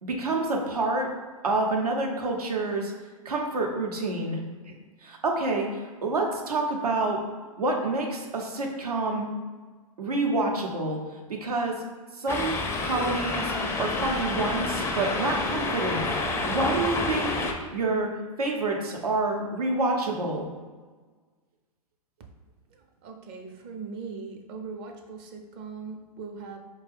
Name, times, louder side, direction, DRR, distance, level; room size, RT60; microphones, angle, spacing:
voice 1, 0.0-1.1 1.4-2.9 3.2-4.7 5.0-7.2 7.6-9.3 10.0-11.0 11.3-11.8 12.1-12.5 12.8-13.5 13.8-16.1 16.5-17.4 17.7-18.1 18.4-20.5, right 2 dB, 85° right, 1 dB, 0.8 m, -28 dB
sound 1, 12.3-17.5, left 3 dB, 15° left, 0.4 m, -29 dB
voice 2, 22.7-26.6, right 5 dB, 45° right, 3 dB, 0.6 m, -40 dB
4.5 x 2.2 x 3.4 m, 1.4 s
hypercardioid pair, 115°, 19 cm